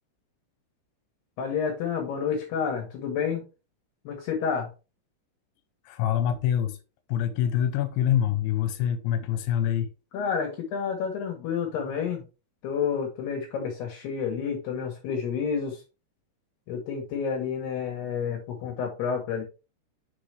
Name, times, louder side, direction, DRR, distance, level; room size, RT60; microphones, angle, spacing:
voice 1, 1.4-3.4 4.0-4.7 10.1-12.2 12.6-15.8 16.7-19.4, left 6 dB, 70° left, 2.9 m, -29 dB
voice 2, 5.9-6.8 7.1-9.9, left 10 dB, 90° left, 3.1 m, -25 dB
6.6 x 4.8 x 3.2 m
omnidirectional pair, 5.4 m